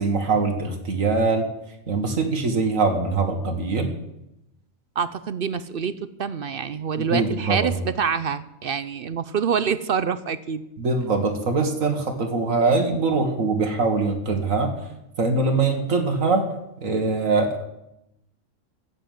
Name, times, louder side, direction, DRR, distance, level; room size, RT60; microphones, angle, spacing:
voice 1, 0.0-1.5 1.9-3.9 7.0-7.7 10.8-14.7 15.2-16.5 16.8-17.7, right 3 dB, 80° right, 4 dB, 2.0 m, -22 dB
voice 2, 5.0-10.7, right 6 dB, 55° right, 15 dB, 0.7 m, -26 dB
14.5 x 7.9 x 9.1 m, 0.86 s
omnidirectional pair, 1.4 m